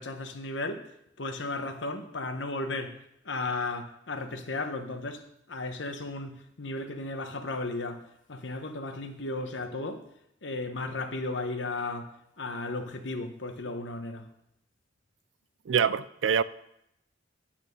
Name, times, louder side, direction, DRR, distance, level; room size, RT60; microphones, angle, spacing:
voice 1, 0.0-10.0 10.4-14.3, left 2 dB, 75° left, 1.1 m, -35 dB
voice 2, 15.7-16.4, right 7 dB, 90° right, 0.4 m, -25 dB
8.9 x 8.9 x 5.3 m
head